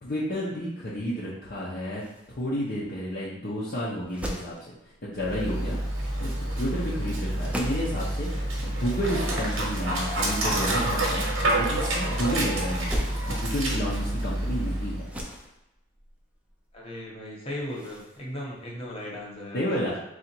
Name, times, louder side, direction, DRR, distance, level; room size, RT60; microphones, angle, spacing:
voice 1, 0.0-2.0 2.4-4.6 5.0-5.8 6.2-8.3 8.6-15.1 19.5-20.0, equal, 45° left, -7 dB, 0.7 m, -31 dB
sound 1, 1.9-19.4, equal, 5° right, 0.5 m, -41 dB
Dog, 5.2-15.1, right 1 dB, 85° right, 1.1 m, -28 dB
voice 2, 16.7-19.8, left 1 dB, 30° left, -4 dB, 1.1 m, -37 dB
3.8 x 2.5 x 4.4 m, 0.91 s
head